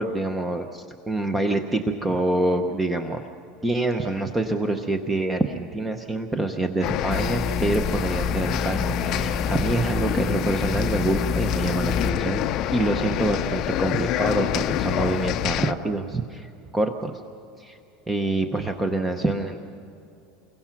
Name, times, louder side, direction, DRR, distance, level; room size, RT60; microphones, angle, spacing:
voice 1, 0.0-3.2 3.6-12.4 12.7-17.2 17.5-17.8 18.1-19.6, right 2 dB, 10° right, 5 dB, 0.8 m, -26 dB
sound 1, 6.8-15.7, left 12 dB, 35° left, 0.5 m, -27 dB
sound 2, 7.1-12.1, left 3 dB, 15° left, 0.9 m, -29 dB
29.5 x 22.5 x 5.9 m, 2.8 s
supercardioid pair, 170°, 0 cm